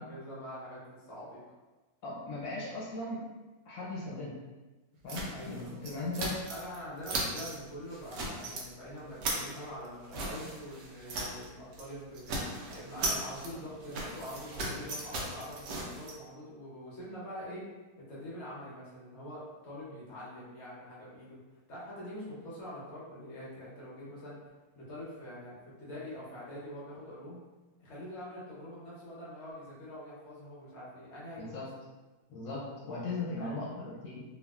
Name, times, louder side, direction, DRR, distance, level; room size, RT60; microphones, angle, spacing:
voice 1, 0.0-1.4 5.3-5.8 6.5-12.2 12.7-17.6 18.1-21.4 21.7-24.4 24.7-27.4 27.8-31.6 33.3-33.6, equal, 55° left, -7 dB, 0.8 m, -44 dB
voice 2, 2.0-3.3 3.6-4.4 5.0-6.4 31.4-31.7 32.3-34.2, left 2 dB, 80° left, -6 dB, 1.5 m, -38 dB
sound 1, 5.1-6.8 7.0-7.6 7.9-8.7 9.0-11.5 11.7-11.9 12.1-16.1, right 2 dB, 75° right, 1.1 m, -37 dB
3.3 x 2.3 x 2.3 m, 1.2 s
omnidirectional pair, 2.1 m